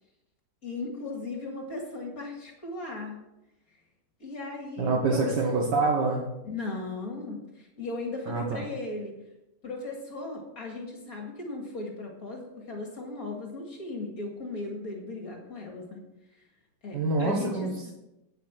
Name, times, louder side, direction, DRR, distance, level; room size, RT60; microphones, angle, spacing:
voice 1, 0.6-3.1 4.2-5.5 6.4-9.2 9.6-16.1 16.8-17.7, left 2 dB, 55° left, 0 dB, 2.5 m, -37 dB
voice 2, 4.8-6.3 8.3-8.6 16.9-17.9, right 3 dB, 80° right, -1 dB, 2.0 m, -26 dB
9.2 x 9.1 x 5.9 m, 0.93 s
omnidirectional pair, 1.8 m